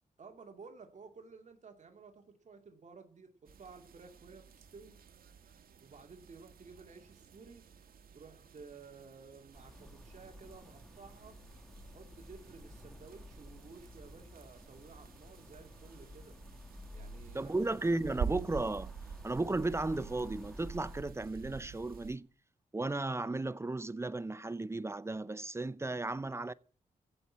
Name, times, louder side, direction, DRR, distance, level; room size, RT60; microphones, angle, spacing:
voice 1, 0.2-3.3 3.6-5.0 5.8-7.7 8.1-11.4 11.9-16.4 16.9-17.5, right 4 dB, 55° right, 2.3 m, -54 dB
sound 1, 3.5-22.2, right 7 dB, 75° right, 1.7 m, -48 dB
sound 2, 9.5-21.0, left 1 dB, ahead, 1.7 m, -53 dB
voice 2, 17.3-18.9 19.2-22.3 22.7-26.5, right 2 dB, 20° right, 0.6 m, -35 dB
15.5 x 6.1 x 9.7 m
cardioid pair, 100°, 15 cm